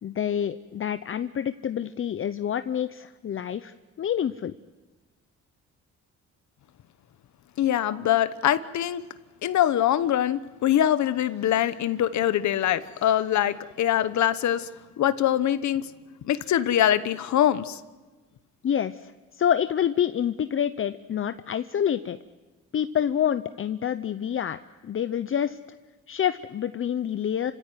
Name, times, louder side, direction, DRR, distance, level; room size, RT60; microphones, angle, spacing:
voice 1, 0.0-4.5 18.6-22.2 22.7-25.6 26.1-27.5, left 9 dB, 45° left, 0.8 m, -27 dB
voice 2, 7.6-9.0 9.4-14.7 15.0-15.8 16.3-17.8, left 11 dB, 70° left, 1.1 m, -23 dB
29.0 x 16.5 x 9.4 m
cardioid pair, 90°, 30 cm